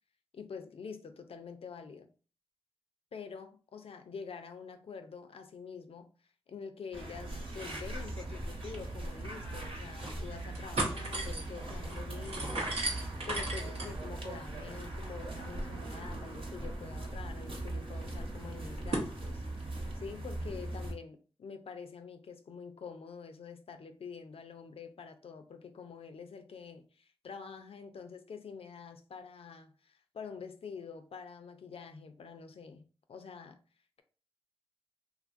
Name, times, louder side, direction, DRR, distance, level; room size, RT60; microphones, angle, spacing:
voice 1, 0.3-2.1 3.1-6.1 6.5-12.6 13.3-19.4 19.9-33.6, left 5 dB, 70° left, 0.4 m, -46 dB
sound 1, 6.9-20.9, right 1 dB, 60° right, 1.0 m, -40 dB
sound 2, 9.1-9.2 9.7-10.2 10.5-19.1, right 2 dB, 85° right, 0.8 m, -39 dB
2.8 x 2.4 x 2.5 m
cardioid pair, 40°, 10 cm